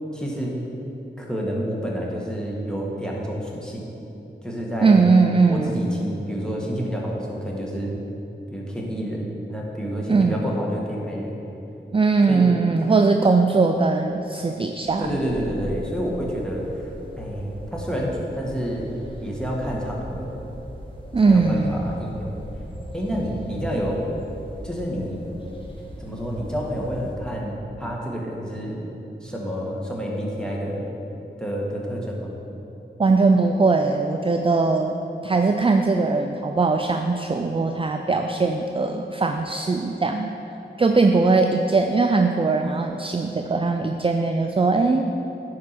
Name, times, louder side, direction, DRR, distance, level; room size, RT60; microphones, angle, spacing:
voice 1, 0.1-0.6 1.2-3.9 4.4-5.0 5.5-8.0 8.5-11.4 12.3-12.5 15.0-16.6 17.2-18.9 19.2-20.3 21.3-22.4 22.9-24.0 24.6-25.4 26.0-28.9 29.2-30.8 31.4-32.4, equal, 5° left, -3 dB, 1.7 m, -29 dB
voice 2, 4.8-5.8 10.1-10.5 11.9-15.2 21.1-21.9 33.0-35.0 35.2-40.4 40.8-45.1, right 3 dB, 30° right, 5 dB, 0.4 m, -20 dB
sound 1, 14.8-27.2, equal, 25° left, 1.3 m, -38 dB
10.5 x 4.7 x 4.2 m, 3.0 s
cardioid pair, 40°, 20 cm